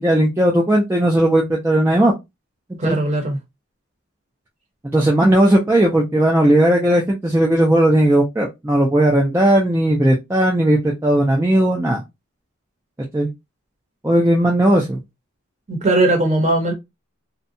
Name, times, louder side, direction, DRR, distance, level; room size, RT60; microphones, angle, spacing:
voice 1, 0.0-2.1 2.7-3.0 4.8-12.0 13.1-13.3 14.0-15.0, right 1 dB, 10° right, 0.3 m, -16 dB
voice 2, 2.8-3.4 5.2-5.3 15.7-16.7, right 2 dB, 30° right, 0.7 m, -18 dB
2.6 x 2.1 x 2.6 m
head